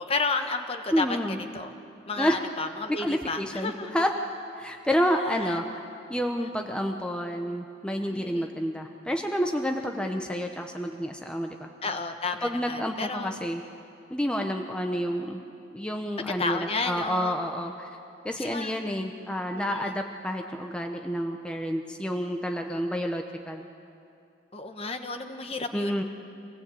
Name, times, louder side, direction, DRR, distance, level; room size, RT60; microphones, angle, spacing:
voice 1, 0.0-1.7 2.1-3.9 5.3-5.5 8.1-8.5 11.8-13.3 16.4-17.4 18.4-18.7 19.5-19.9 24.5-26.0, left 4 dB, 30° left, 7 dB, 1.2 m, -32 dB
voice 2, 0.9-1.4 2.2-2.4 2.9-4.1 4.5-5.8 6.1-11.7 12.4-13.6 14.1-15.4 15.7-17.9 18.2-23.6 25.7-26.0, equal, 5° left, 3 dB, 0.9 m, -29 dB
25.0 x 17.5 x 8.5 m, 2.6 s
head